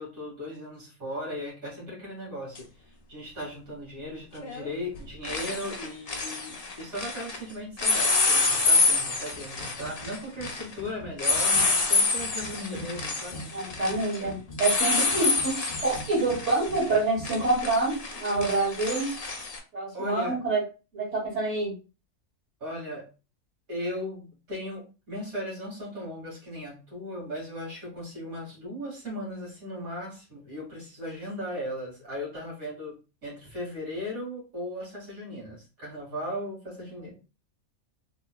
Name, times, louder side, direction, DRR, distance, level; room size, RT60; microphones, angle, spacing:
voice 1, 0.0-13.5 19.9-20.4 22.6-23.1 23.7-33.0 33.2-37.1, left 1 dB, 70° right, -4 dB, 2.5 m, -37 dB
sound 1, 2.5-2.6 4.4-4.7 4.9-7.4 7.8-19.6, left 3 dB, 45° left, 0.5 m, -27 dB
voice 2, 12.5-12.8 13.5-19.1 19.7-20.6 20.9-21.7 37.0-37.1, right 3 dB, 55° right, -10 dB, 2.3 m, -27 dB
3.8 x 3.2 x 2.2 m, 0.32 s
omnidirectional pair, 1.5 m